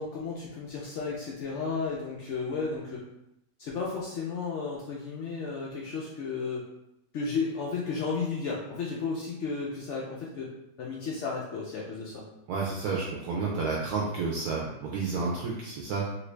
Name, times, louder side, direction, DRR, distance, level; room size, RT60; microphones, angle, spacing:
voice 1, 0.0-3.0 3.6-6.6 7.1-10.5 10.8-12.2, left 4 dB, 80° left, -4 dB, 0.6 m, -33 dB
voice 2, 12.5-16.1, right 4 dB, 70° right, -4 dB, 1.0 m, -30 dB
3.1 x 2.5 x 3.2 m, 0.85 s
omnidirectional pair, 1.8 m